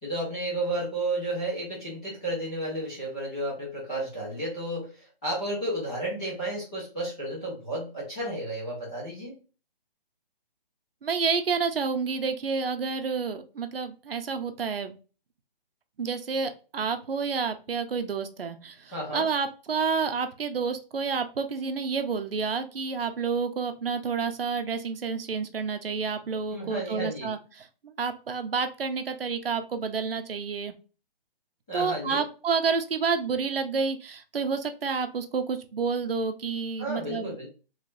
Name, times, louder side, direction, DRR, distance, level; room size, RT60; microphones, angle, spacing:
voice 1, 0.0-9.3 18.9-19.3 26.5-27.3 31.7-32.2 36.8-37.5, right 1 dB, 5° left, -9 dB, 0.7 m, -32 dB
voice 2, 11.0-15.0 16.0-30.7 31.7-37.4, right 5 dB, 75° right, 8 dB, 0.8 m, -29 dB
3.2 x 3.2 x 2.6 m, 0.34 s
hypercardioid pair, 175°, 29 cm